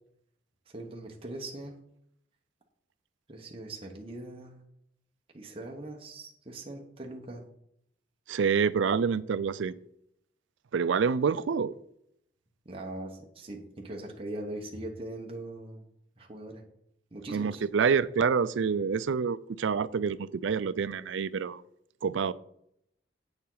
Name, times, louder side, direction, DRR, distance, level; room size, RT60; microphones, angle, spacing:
voice 1, 0.7-1.8 3.3-4.6 5.3-7.4 12.6-15.8 16.2-16.6 17.1-17.6, right 1 dB, 30° right, 1.1 m, -41 dB
voice 2, 8.3-9.7 10.7-11.7 17.3-21.6 22.0-22.3, right 6 dB, 75° right, 0.4 m, -27 dB
8.5 x 7.1 x 3.9 m
head